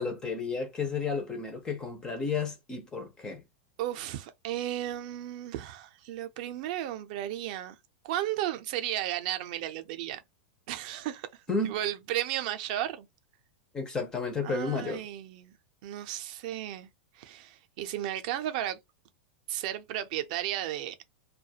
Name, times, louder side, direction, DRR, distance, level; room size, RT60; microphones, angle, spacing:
voice 1, 0.0-3.4 11.5-11.8 13.7-15.0, left 4 dB, 10° left, 0.4 m, -32 dB
voice 2, 3.8-7.8 8.0-10.2 10.7-13.1 14.4-15.5 15.8-16.9 17.1-18.8 19.5-21.0, right 12 dB, 45° right, 0.5 m, -34 dB
2.4 x 2.2 x 2.7 m
supercardioid pair, 165°, 6 cm